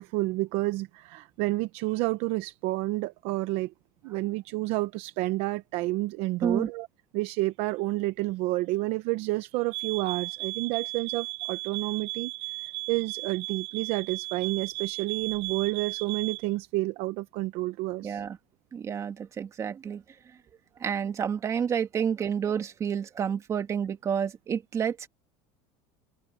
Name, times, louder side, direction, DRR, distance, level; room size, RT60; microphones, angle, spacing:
voice 1, 0.0-3.7 4.0-6.9 7.1-12.3 12.6-18.2, right 19 dB, 60° right, 0.8 m, -30 dB
sound 1, 9.7-16.5, right 25 dB, 90° right, 1.6 m, -36 dB
voice 2, 18.0-18.4 18.7-20.0 20.8-25.1, right 7 dB, 25° right, 2.1 m, -29 dB
cardioid pair, 165°, 12 cm